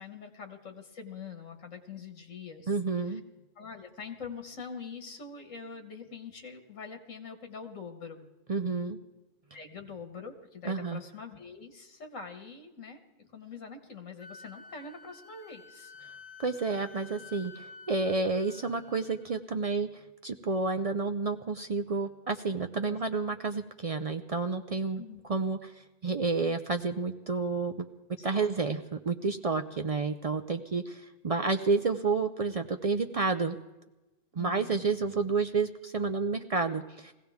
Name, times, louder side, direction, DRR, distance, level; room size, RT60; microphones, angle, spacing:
voice 1, 0.0-2.7 3.1-3.2 3.6-8.2 9.5-15.9 22.9-23.0 25.0-25.2 28.2-28.5 34.4-34.9, left 5 dB, 90° left, 5 dB, 1.7 m, -44 dB
voice 2, 2.7-3.2 8.5-9.0 10.6-11.0 16.4-25.0 25.3-27.9 28.2-33.6 34.3-37.1, right 4 dB, 55° right, 7 dB, 0.4 m, -30 dB
Wind instrument woodwind instrument, 14.2-19.3, left 5 dB, 55° left, 1.2 m, -51 dB
21.5 x 16.0 x 3.5 m, 1.1 s
omnidirectional pair, 1.3 m